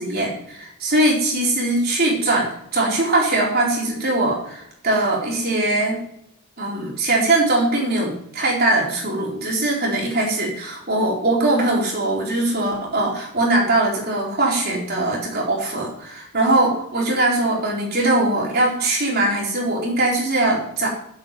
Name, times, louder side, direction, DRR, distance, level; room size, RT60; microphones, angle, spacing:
voice 1, 0.0-6.0 6.6-20.9, right 2 dB, 45° right, -3 dB, 4.3 m, -21 dB
8.8 x 8.4 x 9.3 m, 0.75 s
head